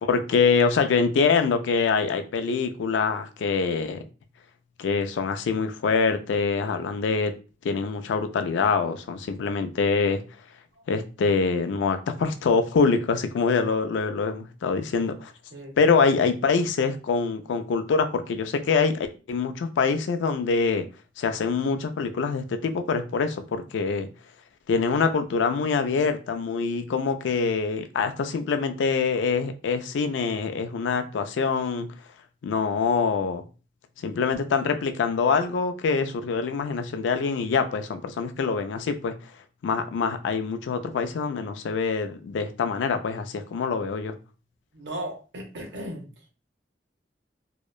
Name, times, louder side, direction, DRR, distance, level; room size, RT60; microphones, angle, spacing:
voice 1, 0.0-4.0 4.8-7.3 7.6-10.2 10.9-15.3 15.8-20.8 21.2-24.1 24.7-31.9 32.4-33.4 34.0-39.1 39.6-44.1, left 5 dB, 90° left, 8 dB, 0.3 m, -25 dB
voice 2, 15.5-16.0 44.7-46.1, right 1 dB, 75° right, 1 dB, 0.8 m, -36 dB
2.8 x 2.1 x 2.2 m, 0.34 s
head